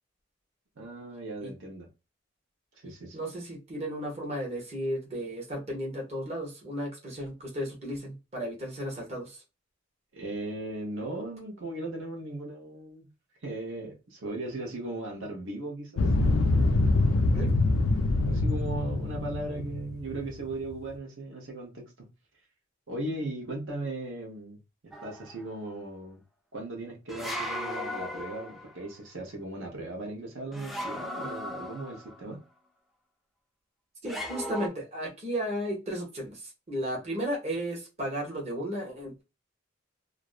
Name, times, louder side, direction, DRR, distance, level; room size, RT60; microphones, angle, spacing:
voice 1, 0.8-1.9 2.8-3.2 10.1-13.1 13.4-16.0 18.2-21.8 22.9-24.6 24.8-26.2 26.5-32.4, right 2 dB, 70° right, 1 dB, 0.9 m, -37 dB
voice 2, 3.1-9.4 17.3-17.5 34.0-39.2, equal, 30° right, -2 dB, 0.9 m, -34 dB
sound 1, 16.0-20.7, left 2 dB, 90° left, 0.4 m, -25 dB
sound 2, 24.9-25.4 27.1-28.8 30.5-32.3 34.0-34.7, equal, ahead, 0.3 m, -37 dB
2.5 x 2.0 x 2.4 m, 0.27 s
head